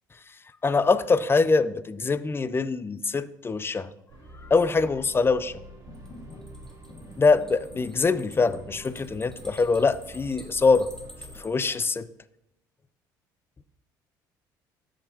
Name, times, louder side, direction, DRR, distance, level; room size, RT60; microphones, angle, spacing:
voice 1, 0.6-3.9 4.5-5.5 7.2-10.9 11.4-12.1, left 4 dB, 25° left, 15 dB, 0.5 m, -23 dB
sound 1, 4.1-11.5, right 1 dB, 35° right, 3.2 m, -47 dB
sound 2, 5.9-6.5 6.9-9.6, left 3 dB, 45° left, 1.6 m, -49 dB
sound 3, 5.9-11.5, left 1 dB, 5° left, 1.8 m, -49 dB
13.0 x 5.1 x 2.8 m, 0.86 s
hypercardioid pair, 70°, 10 cm